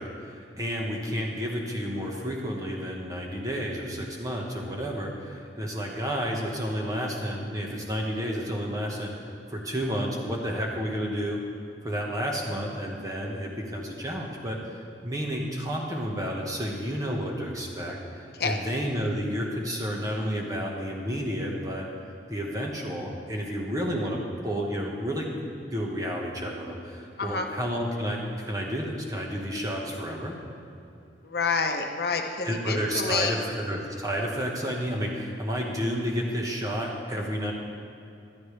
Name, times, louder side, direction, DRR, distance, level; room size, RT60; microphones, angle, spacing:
voice 1, 0.0-11.4 11.8-14.8 15.0-21.9 22.3-25.3 25.7-30.4 32.4-37.5, equal, 20° right, -1 dB, 1.4 m, -31 dB
voice 2, 31.2-33.3, left 4 dB, 60° left, 4 dB, 0.9 m, -28 dB
15.0 x 12.5 x 3.4 m, 2.6 s
head